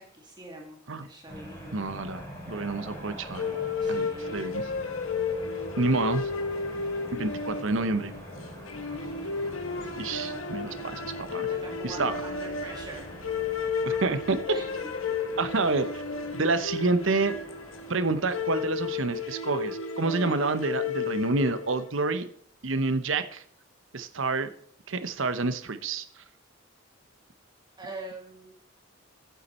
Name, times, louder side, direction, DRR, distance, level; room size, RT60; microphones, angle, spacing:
voice 1, 0.0-1.8 3.8-4.4 11.5-13.1 14.5-14.7 27.8-28.5, right 2 dB, 20° right, 0 dB, 1.9 m, -43 dB
sound 1, 1.3-19.3, equal, 15° left, 5.3 m, -45 dB
voice 2, 1.7-3.6 3.9-4.7 5.8-6.3 7.2-8.1 10.0-11.5 11.8-12.1 13.9-14.4 15.4-16.0 16.3-17.3 17.9-22.3 22.6-23.4 23.9-24.5 24.9-26.1, right 3 dB, 70° right, 11 dB, 0.9 m, -28 dB
sound 2, 3.4-21.9, left 5 dB, 85° left, 1.3 m, -33 dB
12.5 x 8.3 x 4.4 m, 0.63 s
head